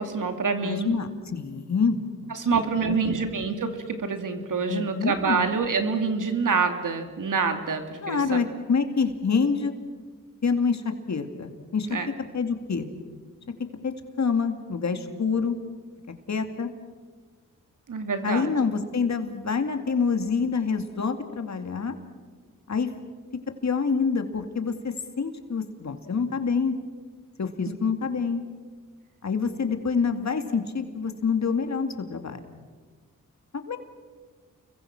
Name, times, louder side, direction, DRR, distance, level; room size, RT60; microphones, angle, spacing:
voice 1, 0.0-1.0 2.3-8.4 11.9-12.1 17.9-18.6, right 5 dB, 65° right, 6 dB, 2.8 m, -26 dB
voice 2, 0.6-2.3 2.8-3.3 4.7-5.5 8.0-9.7 10.4-11.9 12.3-12.9 13.8-15.6 16.3-16.7 18.2-21.9 22.7-22.9 23.6-26.7 27.4-28.4 29.2-32.4 33.7-33.8, left 5 dB, 55° left, 7 dB, 2.5 m, -26 dB
30.0 x 22.5 x 6.1 m, 1.5 s
cardioid pair, 65°, 34 cm